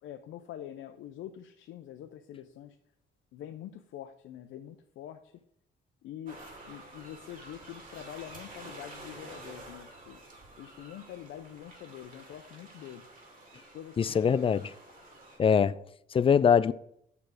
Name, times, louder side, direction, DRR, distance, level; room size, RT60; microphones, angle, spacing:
voice 1, 0.0-2.8 3.3-5.3 6.0-6.4 6.7-10.2 10.6-13.0 13.7-14.6, left 11 dB, 80° left, 0.5 m, -45 dB
sound 1, 6.3-15.4, right 2 dB, 45° right, 2.6 m, -49 dB
voice 2, 14.0-14.7 15.4-15.8 16.1-16.7, left 7 dB, 30° left, 0.3 m, -23 dB
6.7 x 5.9 x 4.8 m
cardioid pair, 90°, 20 cm